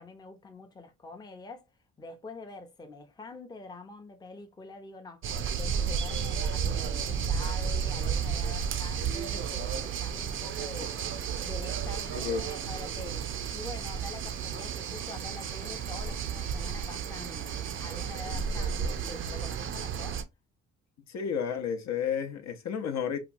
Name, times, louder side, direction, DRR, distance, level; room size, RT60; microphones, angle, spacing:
voice 1, 0.0-1.7 2.0-5.2 5.6-10.9 11.4-20.2, left 2 dB, 15° left, 0.5 m, -45 dB
sound 1, 5.2-20.2, right 7 dB, 45° right, 0.4 m, -32 dB
sound 2, 8.0-19.7, right 6 dB, 90° right, 0.8 m, -53 dB
voice 2, 12.1-12.4 21.1-23.2, left 7 dB, 65° left, 0.6 m, -31 dB
2.9 x 2.2 x 2.5 m
cardioid pair, 90°, 30 cm